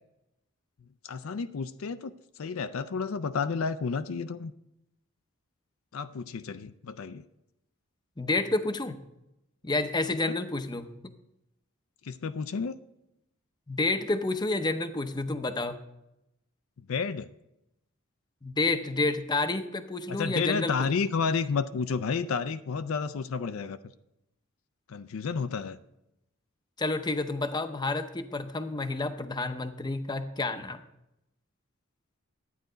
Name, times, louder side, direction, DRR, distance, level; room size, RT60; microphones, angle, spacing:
voice 1, 1.0-2.1 2.4-4.5 5.9-7.2 10.3-10.4 12.0-12.8 16.9-17.3 20.1-23.8 24.9-25.8, left 5 dB, 65° left, 11 dB, 0.4 m, -31 dB
voice 2, 8.2-9.0 9.6-10.9 13.7-15.8 18.4-20.9 26.8-30.8, left 2 dB, 20° left, 9 dB, 0.6 m, -29 dB
12.0 x 9.3 x 3.9 m, 0.86 s
head